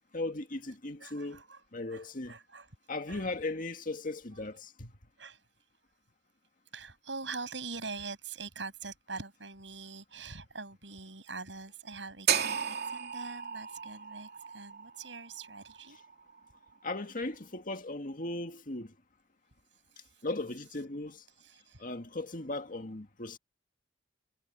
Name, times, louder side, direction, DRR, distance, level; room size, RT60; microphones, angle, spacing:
voice 1, 0.1-1.4 1.7-2.4 2.9-4.9 16.8-18.9 20.2-21.2 21.8-23.4, left 2 dB, 50° left, 2.0 m, -37 dB
voice 2, 1.0-1.6 1.9-2.7 3.1-3.3 5.2-5.4 6.7-16.0 19.9-20.2 21.4-21.8, right 4 dB, 80° right, 7.6 m, -44 dB
sound 1, 12.3-16.4, right 8 dB, 60° right, 2.7 m, -34 dB
head